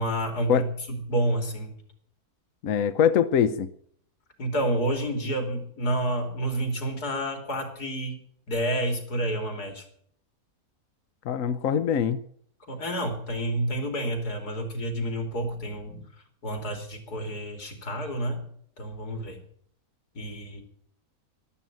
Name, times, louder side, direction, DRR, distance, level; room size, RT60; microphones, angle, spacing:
voice 1, 0.0-1.7 4.4-8.2 8.5-9.9 12.6-16.1 16.4-18.4 18.8-19.4 20.1-20.6, right 1 dB, 90° left, 5 dB, 3.6 m, -29 dB
voice 2, 2.6-3.7 11.2-12.2, left 8 dB, 65° left, 13 dB, 1.1 m, -23 dB
12.5 x 12.0 x 9.0 m, 0.64 s
omnidirectional pair, 1.6 m